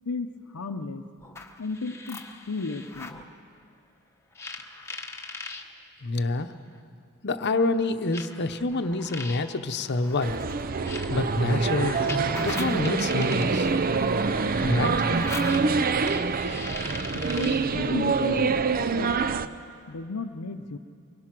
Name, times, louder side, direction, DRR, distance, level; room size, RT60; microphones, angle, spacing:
voice 1, 0.1-1.0 1.6-2.2 2.5-3.2 17.4-19.6 19.9-20.8, left 4 dB, 75° left, 3 dB, 0.7 m, -34 dB
sound 1, 1.2-3.2 4.4-5.6 6.7-6.8 8.1-17.7, left 3 dB, 10° left, 1.2 m, -40 dB
voice 2, 6.0-6.5 7.2-10.4 11.1-12.1 12.4-13.7 14.6-15.1, left 2 dB, 50° left, 9 dB, 0.9 m, -27 dB
sound 2, 10.2-19.5, right 4 dB, 40° right, 0.6 m, -25 dB
23.5 x 21.5 x 6.1 m, 2.3 s
head